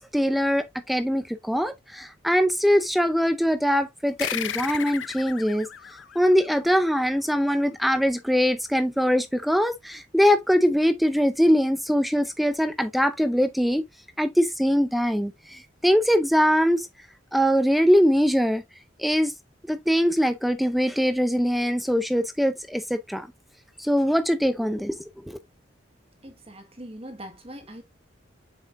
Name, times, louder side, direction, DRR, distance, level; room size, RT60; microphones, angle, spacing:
voice 1, 0.0-5.7 6.1-13.8 14.2-16.9 17.3-18.6 19.0-19.3 19.7-23.3 23.8-25.4, equal, ahead, 0.6 m, -22 dB
sound 1, 4.2-7.2, left 9 dB, 85° left, 0.7 m, -34 dB
voice 2, 26.2-27.8, right 1 dB, 35° right, 1.6 m, -41 dB
7.4 x 5.4 x 2.6 m
head